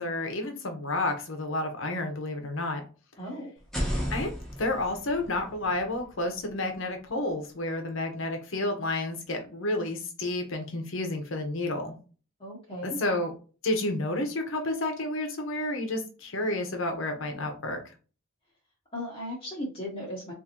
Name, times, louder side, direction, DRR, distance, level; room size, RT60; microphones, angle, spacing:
voice 1, 0.0-2.8 4.1-4.3 4.6-11.9 12.8-13.3 13.6-17.8, left 2 dB, 70° left, 5 dB, 0.9 m, -30 dB
voice 2, 3.2-3.5 12.4-13.0 18.9-20.3, equal, 25° left, -4 dB, 1.0 m, -36 dB
sound 1, 3.6-7.4, equal, ahead, 0.8 m, -36 dB
3.7 x 2.6 x 2.9 m, 0.36 s
head